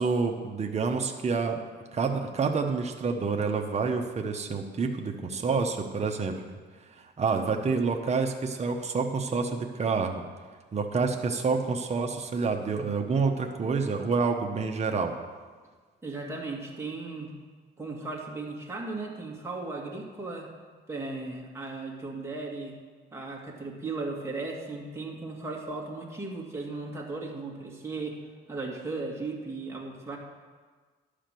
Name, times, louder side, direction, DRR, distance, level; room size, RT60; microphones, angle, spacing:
voice 1, 0.0-1.6 1.9-6.4 6.9-10.2 10.7-15.2, right 4 dB, 35° right, 3 dB, 1.0 m, -28 dB
voice 2, 16.0-17.3 17.8-20.5 20.9-22.8 23.1-28.2 28.5-30.2, right 3 dB, 15° right, -2 dB, 2.0 m, -36 dB
11.5 x 5.0 x 7.6 m, 1.5 s
cardioid pair, 90°, 20 cm